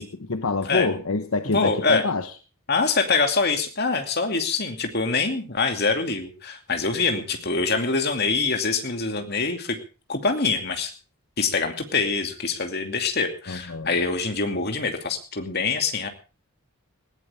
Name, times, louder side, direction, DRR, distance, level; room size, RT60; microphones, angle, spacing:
voice 1, 0.0-2.3 13.5-13.9, left 3 dB, 70° left, 9 dB, 1.1 m, -27 dB
voice 2, 1.5-2.0 2.7-9.8 10.1-10.9 11.4-16.1, left 4 dB, 45° left, 5 dB, 2.6 m, -24 dB
20.0 x 16.5 x 3.6 m, 0.34 s
head